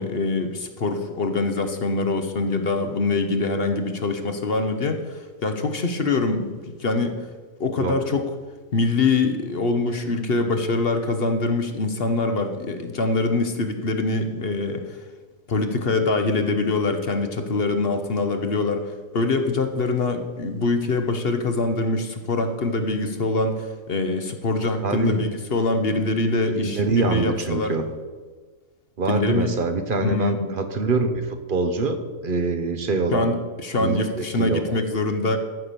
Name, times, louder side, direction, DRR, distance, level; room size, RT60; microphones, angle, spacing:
voice 1, 0.0-7.3 7.6-8.3 8.7-15.0 15.5-27.7 29.1-29.5 30.0-30.5 33.1-35.4, left 3 dB, 50° left, 7 dB, 1.0 m, -24 dB
voice 2, 24.8-25.2 26.5-27.8 29.0-33.3 33.8-34.8, right 3 dB, 40° right, 8 dB, 1.1 m, -24 dB
14.0 x 5.8 x 6.8 m, 1.5 s
omnidirectional pair, 1.4 m